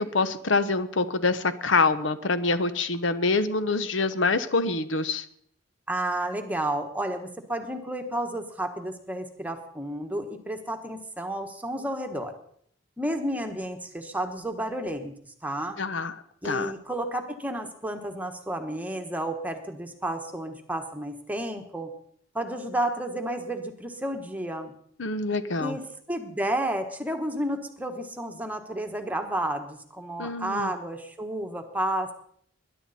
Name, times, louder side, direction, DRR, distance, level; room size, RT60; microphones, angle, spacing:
voice 1, 0.0-5.2 15.8-16.1 16.4-16.7 25.0-25.8 30.2-30.7, left 3 dB, 75° left, 12 dB, 0.9 m, -25 dB
voice 2, 5.9-12.3 13.0-15.1 15.4-15.8 16.4-21.9 22.3-24.7 25.6-25.8 26.1-32.1, right 1 dB, 10° right, 5 dB, 1.4 m, -31 dB
21.0 x 11.0 x 4.3 m, 0.65 s
head